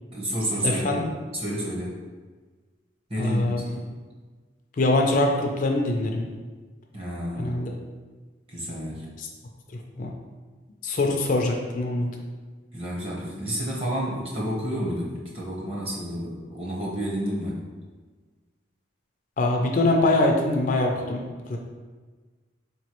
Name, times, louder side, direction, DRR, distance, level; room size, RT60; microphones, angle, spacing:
voice 1, 0.1-2.0 3.1-3.9 6.9-7.5 8.5-9.1 11.2-11.3 12.7-17.6, equal, 30° right, -4 dB, 0.9 m, -30 dB
voice 2, 0.6-1.0 3.2-3.6 4.8-6.3 7.4-7.7 9.2-9.3 10.0-10.1 10.8-12.1 19.4-21.2 21.5-21.6, left 2 dB, 45° left, 1 dB, 0.4 m, -23 dB
4.3 x 3.0 x 2.9 m, 1.4 s
head